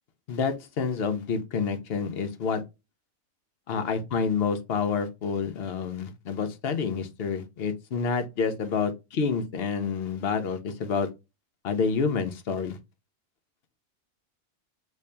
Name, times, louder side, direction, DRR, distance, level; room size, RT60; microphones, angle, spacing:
voice 1, 0.3-2.6 3.7-11.1 11.6-12.8, left 5 dB, 55° left, 0.8 m, -28 dB
3.3 x 2.7 x 3.3 m
omnidirectional pair, 1.4 m